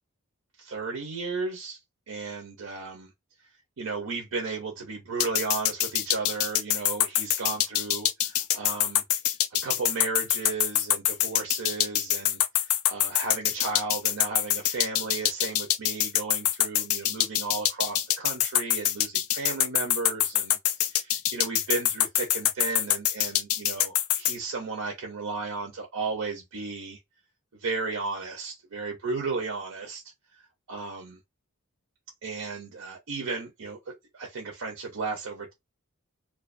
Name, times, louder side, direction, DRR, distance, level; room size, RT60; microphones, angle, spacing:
voice 1, 0.6-1.8 2.1-3.1 3.8-9.0 9.6-27.0 27.5-30.0 30.3-31.2 32.2-35.5, right 4 dB, 90° right, 0.6 m, -34 dB
sound 1, 5.2-24.4, left 12 dB, 85° left, 0.3 m, -24 dB
2.3 x 2.3 x 2.4 m
head